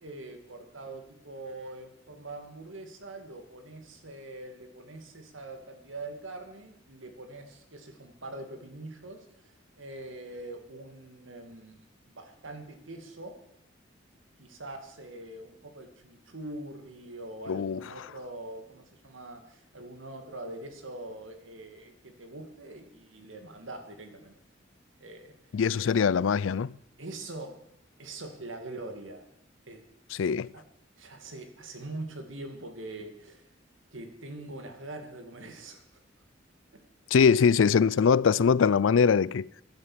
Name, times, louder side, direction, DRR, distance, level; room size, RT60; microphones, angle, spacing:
voice 1, 0.0-13.3 14.4-24.4 25.0-25.3 27.0-27.5 28.0-29.2 29.7-29.8 30.5-30.6 31.0-33.5 33.9-36.0 37.3-37.5 37.8-37.9, right 2 dB, 90° right, 2.3 m, -43 dB
voice 2, 17.5-17.8 25.5-26.7 30.1-30.5 37.1-39.5, left 6 dB, 85° left, 0.4 m, -22 dB
12.5 x 10.5 x 7.4 m
head